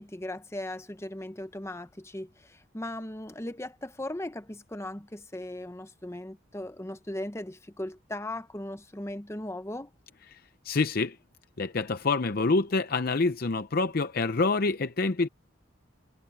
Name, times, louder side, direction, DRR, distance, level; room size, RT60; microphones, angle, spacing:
voice 1, 0.0-9.9, left 1 dB, 15° left, 0.8 m, -38 dB
voice 2, 10.6-11.2 11.6-15.3, left 3 dB, 45° left, 0.6 m, -26 dB
head